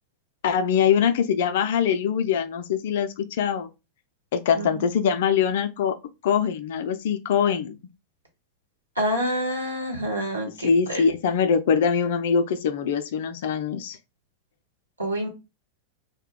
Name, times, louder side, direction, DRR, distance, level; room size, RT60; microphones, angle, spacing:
voice 1, 0.4-3.7 4.3-6.0 6.2-7.7 10.6-14.0, left 7 dB, 55° left, 0.4 m, -23 dB
voice 2, 9.0-11.0 15.0-15.3, equal, 80° right, 1.1 m, -27 dB
2.3 x 2.1 x 3.6 m
figure-of-eight pair, 90°, 0 cm